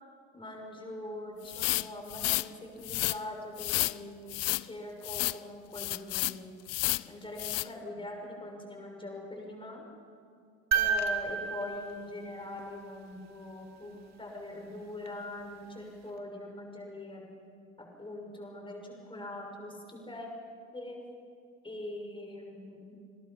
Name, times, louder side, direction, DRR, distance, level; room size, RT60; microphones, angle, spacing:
voice 1, 0.3-6.5 7.1-9.8 10.7-17.3 17.8-20.3 20.7-21.0 21.6-22.9, left 1 dB, 10° left, 1 dB, 6.4 m, -42 dB
sound 1, 1.5-2.5 2.8-3.2 3.6-4.0 4.3-4.6 5.0-5.4 5.7-6.4 6.7-7.1 7.4-7.7, left 20 dB, 40° left, 0.6 m, -31 dB
sound 2, 10.7-13.0 15.1-15.2, right 6 dB, 40° right, 2.5 m, -32 dB
29.5 x 21.5 x 5.7 m, 2.3 s
figure-of-eight pair, 70°, 42 cm